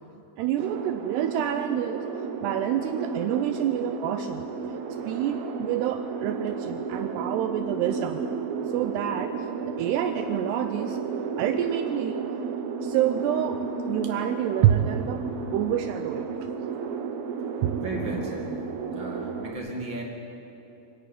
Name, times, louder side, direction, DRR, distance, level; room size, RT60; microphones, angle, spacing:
voice 1, 0.4-2.0 2.4-4.4 5.1-8.2 8.7-11.0 11.4-12.2 12.8-15.3 15.5-16.3 17.6-17.7, right 10 dB, 85° right, 8 dB, 2.3 m, -27 dB
sound 1, 0.6-19.5, right 5 dB, 70° right, 2.4 m, -33 dB
voice 2, 17.8-18.6 18.9-20.0, right 1 dB, 40° right, -1 dB, 1.8 m, -35 dB
28.5 x 10.0 x 9.0 m, 2.9 s
omnidirectional pair, 5.6 m